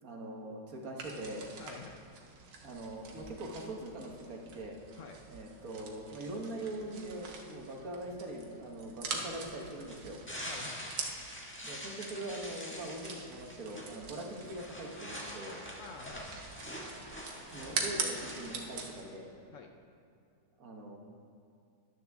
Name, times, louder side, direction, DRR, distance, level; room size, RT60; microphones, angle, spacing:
voice 1, 0.0-1.5 2.6-4.8 5.3-10.2 11.6-15.6 17.5-19.3 20.6-21.0, right 1 dB, 55° right, 0 dB, 1.5 m, -42 dB
sound 1, 1.0-19.0, right 4 dB, 70° right, 1.7 m, -44 dB
voice 2, 1.6-2.1 5.0-5.2 7.5-7.7 10.4-11.0 14.1-14.2 15.8-16.5 19.5-19.8, left 5 dB, 70° left, 4 dB, 0.7 m, -49 dB
sound 2, 9.2-19.1, equal, 5° left, 1.2 m, -45 dB
13.0 x 10.5 x 3.5 m, 2.5 s
omnidirectional pair, 2.0 m